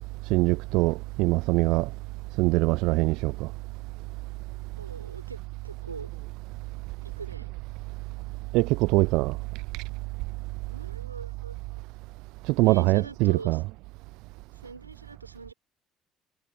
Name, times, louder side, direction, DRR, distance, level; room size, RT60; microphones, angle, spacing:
voice 1, 0.3-1.9 2.4-3.5 8.5-9.4 12.5-13.6, right 22 dB, 65° right, 0.4 m, -23 dB
voice 2, 4.8-6.1 7.0-7.6 10.7-11.6 12.5-13.6 14.5-15.5, right 4 dB, 90° right, 4.9 m, -43 dB
figure-of-eight pair, 50°, 0 cm